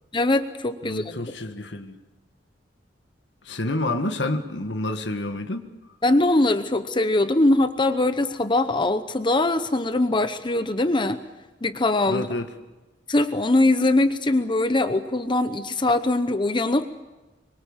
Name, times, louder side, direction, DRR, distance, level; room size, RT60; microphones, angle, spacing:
voice 1, 0.1-1.1 6.0-11.2 11.6-12.3 13.1-16.9, left 2 dB, 25° left, 0.9 m, -22 dB
voice 2, 0.8-2.0 3.4-5.7 12.1-12.5, left 2 dB, 75° left, 1.8 m, -28 dB
25.5 x 23.5 x 7.3 m
head